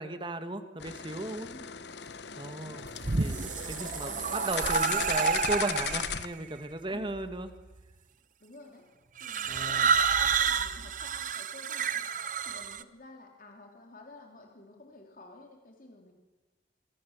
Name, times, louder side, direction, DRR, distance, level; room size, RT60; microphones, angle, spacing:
voice 1, 0.0-1.5 2.4-2.9 3.2-3.4 3.6-7.5 9.5-9.9, right 2 dB, 25° right, 9 dB, 1.7 m, -36 dB
sound 1, 0.8-6.3, left 7 dB, 65° left, 1.0 m, -37 dB
voice 2, 1.5-1.8 2.3-3.0 3.4-5.1 8.4-8.9 9.2-12.1 12.4-16.1, left 2 dB, 45° left, 2 dB, 3.1 m, -51 dB
sound 2, 2.8-6.3 7.1-7.6 9.2-12.8, right 6 dB, 45° right, 0.9 m, -29 dB
26.0 x 25.5 x 7.2 m, 1.2 s
head